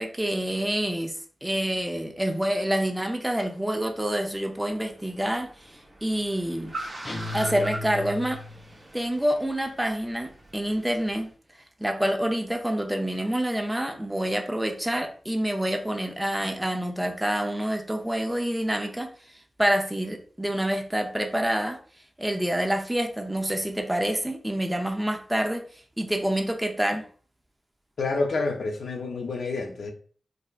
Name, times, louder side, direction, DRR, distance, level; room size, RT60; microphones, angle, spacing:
voice 1, 0.0-6.7 7.3-8.4 8.9-11.3 11.8-19.1 19.6-21.8 22.2-25.6 26.0-27.0, right 1 dB, 10° right, 0.6 m, -27 dB
Car, 3.9-11.3, right 1 dB, 25° right, 1.0 m, -42 dB
sound 1, 7.0-8.8, left 2 dB, 35° left, 0.6 m, -35 dB
voice 2, 28.0-29.9, left 3 dB, 85° left, 0.6 m, -28 dB
4.3 x 2.6 x 2.4 m
wide cardioid pair, 85°, 0 cm